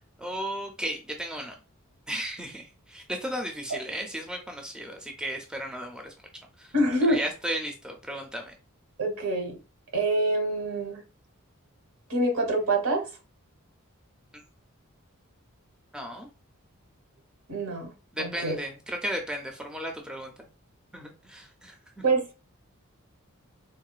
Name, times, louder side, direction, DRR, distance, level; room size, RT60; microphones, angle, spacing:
voice 1, 0.2-1.5 2.1-6.1 6.6-6.7 7.1-8.5 15.9-16.3 18.1-20.3 20.9-22.0, equal, 5° right, 0.4 m, -35 dB
voice 2, 6.7-7.2 9.0-9.6 9.9-11.0 12.1-13.1 17.5-17.9 18.2-18.6 22.0-22.4, right 2 dB, 70° right, 0.9 m, -26 dB
3.6 x 2.2 x 2.3 m
head